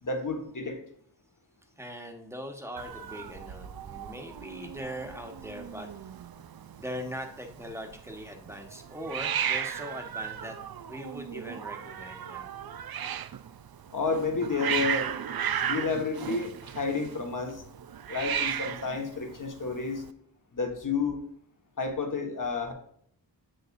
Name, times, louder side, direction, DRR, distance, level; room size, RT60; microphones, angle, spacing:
voice 1, 0.0-0.8 13.9-15.1 15.6-17.6 18.1-20.0 20.5-21.2 21.8-22.7, left 4 dB, 45° left, 4 dB, 1.4 m, -30 dB
voice 2, 1.8-5.9 6.8-10.6 10.8-12.5, equal, 5° right, 3 dB, 1.2 m, -40 dB
Hiss, 2.8-20.1, right 8 dB, 55° right, 0.5 m, -36 dB
7.5 x 6.5 x 2.6 m, 0.64 s
wide cardioid pair, 90°, 44 cm